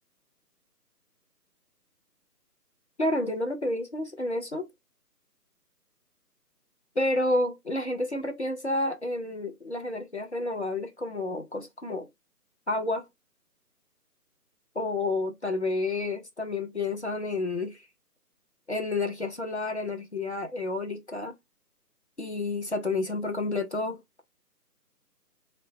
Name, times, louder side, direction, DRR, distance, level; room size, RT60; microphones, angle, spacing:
voice 1, 3.0-4.7 7.0-12.1 12.7-13.1 14.8-17.8 18.7-21.3 22.2-24.0, left 2 dB, 45° left, 0.5 m, -30 dB
3.0 x 2.1 x 2.7 m
hypercardioid pair, 180°, 48 cm